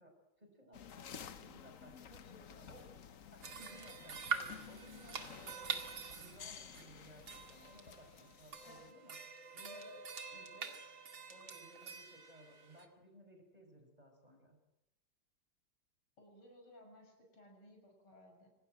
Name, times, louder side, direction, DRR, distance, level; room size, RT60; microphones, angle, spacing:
voice 1, 0.0-2.2 2.7-2.8 3.3-7.2 7.5-9.2 9.5-10.0 10.3-10.8 11.2-14.6, equal, 15° right, 3 dB, 5.4 m, -59 dB
sound 1, 0.7-8.9, left 7 dB, 50° left, 1.1 m, -53 dB
voice 2, 2.2-2.9 16.2-18.5, left 1 dB, 75° left, 2 dB, 7.7 m, -60 dB
sound 2, 3.4-12.9, right 6 dB, 65° right, 3.0 m, -45 dB
26.5 x 19.5 x 7.7 m, 0.93 s
omnidirectional pair, 2.4 m